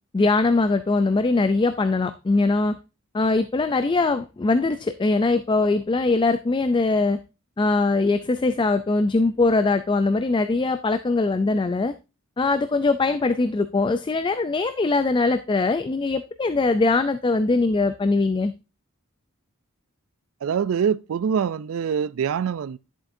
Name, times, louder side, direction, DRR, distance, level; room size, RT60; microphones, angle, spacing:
voice 1, 0.1-2.8 3.1-7.2 7.6-11.9 12.4-18.5, left 3 dB, 20° left, 0.3 m, -21 dB
voice 2, 20.4-22.8, right 7 dB, 65° right, 0.3 m, -24 dB
10.5 x 7.3 x 2.6 m
head